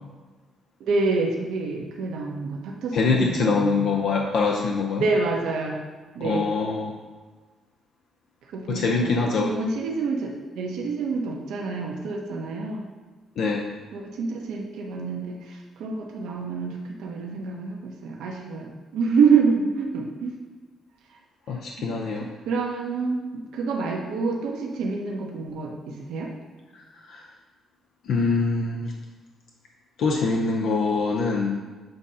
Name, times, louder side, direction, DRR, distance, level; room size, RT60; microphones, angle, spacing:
voice 1, 0.8-4.0 5.0-5.8 6.1-6.5 8.5-9.2 9.4-12.9 13.9-20.4 21.1-21.2 21.5-21.9 22.1-26.3, right 4 dB, 85° right, -1 dB, 0.9 m, -27 dB
voice 2, 2.9-5.0 6.2-7.0 8.7-9.5 13.4-13.7 21.5-22.3 26.7-27.2 28.0-28.9 30.0-31.6, left 4 dB, 70° left, 0 dB, 0.7 m, -24 dB
7.9 x 2.8 x 5.5 m, 1.3 s
cardioid pair, 90°, 0 cm